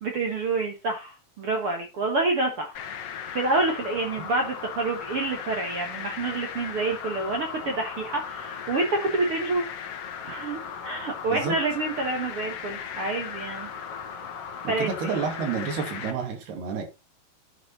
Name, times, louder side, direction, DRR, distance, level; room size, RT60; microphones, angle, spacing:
voice 1, 0.0-2.8 3.3-9.7 10.2-13.7 14.7-15.2, right 3 dB, 55° right, 1.7 m, -28 dB
sound 1, 2.7-16.1, left 7 dB, 60° left, 1.6 m, -37 dB
voice 2, 14.6-16.8, right 6 dB, 75° right, 4.4 m, -30 dB
9.5 x 6.3 x 4.2 m
omnidirectional pair, 4.6 m